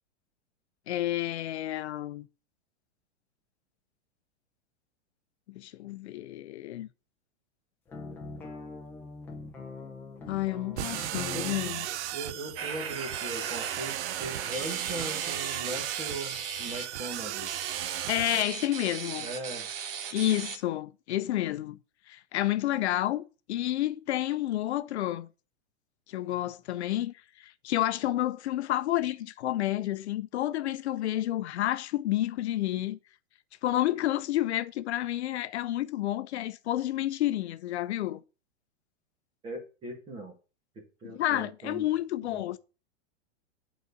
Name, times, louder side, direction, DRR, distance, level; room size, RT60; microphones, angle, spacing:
voice 1, 0.9-2.3 5.5-6.9 10.3-11.9 18.1-19.3 20.1-21.8 22.1-25.3 26.1-33.0 33.6-38.2 41.0-42.6, left 14 dB, 65° left, 0.6 m, -30 dB
sound 1, 7.9-11.7, left 3 dB, 5° left, 0.7 m, -42 dB
sound 2, 10.8-18.4, right 14 dB, 75° right, 0.5 m, -36 dB
voice 2, 12.1-17.5 19.2-19.7 39.4-40.3 40.7-41.8 42.2-42.4, right 1 dB, 15° right, 1.3 m, -39 dB
sound 3, 12.6-20.6, right 7 dB, 55° right, 1.0 m, -37 dB
9.1 x 4.1 x 6.7 m
supercardioid pair, 180°, 35 cm